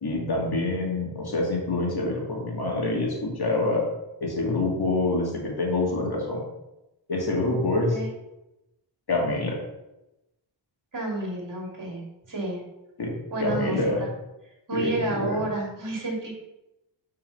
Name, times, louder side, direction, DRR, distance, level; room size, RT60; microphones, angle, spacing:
voice 1, 0.0-3.8 4.2-6.4 7.1-8.0 9.1-9.6 13.0-14.0 14.7-15.4, left 2 dB, 50° left, -1 dB, 2.3 m, -26 dB
voice 2, 10.9-12.0 12.3-12.6 13.3-14.1 14.7-16.3, right 2 dB, 40° right, -1 dB, 2.5 m, -30 dB
5.9 x 4.5 x 5.5 m, 0.93 s
wide cardioid pair, 80°, 47 cm